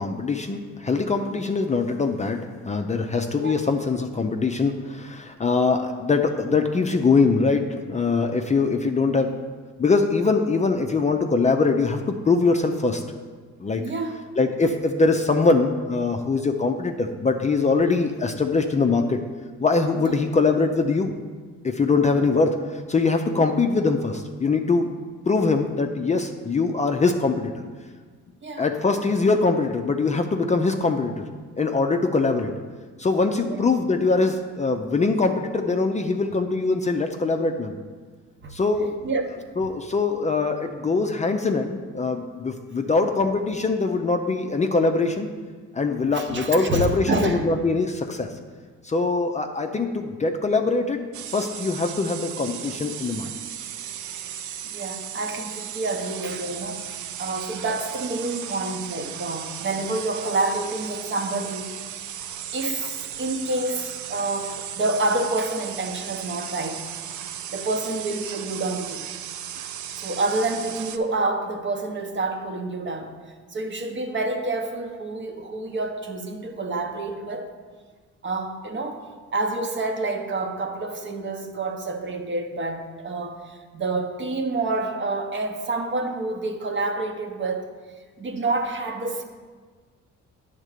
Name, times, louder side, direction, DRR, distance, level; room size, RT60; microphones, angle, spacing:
voice 1, 0.0-9.3 9.8-13.0 13.6-13.8 14.4-19.2 19.6-21.1 21.6-24.9 25.3-27.5 28.6-31.3 31.6-32.5 33.0-37.7 38.5-39.0 39.6-45.3 45.7-48.3 48.8-53.3, left 4 dB, 25° left, 4 dB, 0.5 m, -22 dB
voice 2, 13.8-14.2 20.0-20.2 23.4-23.5 28.4-28.7 33.4-33.6 38.4-38.5 39.0-39.3 46.1-47.4 54.6-62.0 62.5-66.9 67.5-69.0 70.0-73.1 73.5-77.5 78.2-79.0 79.3-87.7 88.2-89.2, right 2 dB, 40° right, 5 dB, 0.9 m, -28 dB
sound 1, 51.1-71.0, right 10 dB, 75° right, 0.5 m, -36 dB
8.9 x 3.6 x 6.6 m, 1.5 s
cardioid pair, 90°, 30 cm